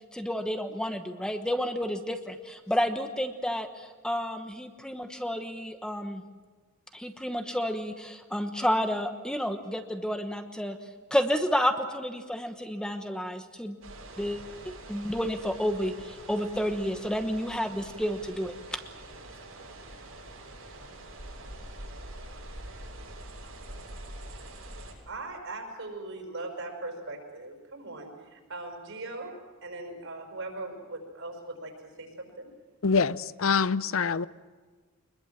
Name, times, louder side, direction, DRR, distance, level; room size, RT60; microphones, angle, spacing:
voice 1, 0.1-6.2 6.9-10.8 11.1-13.8 14.2-14.4 14.9-18.8, equal, 5° left, 6 dB, 1.1 m, -30 dB
sound 1, 13.8-24.9, right 1 dB, 85° right, 7.4 m, -45 dB
voice 2, 25.1-29.3 29.6-31.7 32.0-32.5, right 2 dB, 65° right, 3 dB, 5.5 m, -39 dB
voice 3, 32.8-34.3, left 5 dB, 70° left, 17 dB, 0.6 m, -25 dB
23.5 x 21.5 x 7.5 m, 1.4 s
head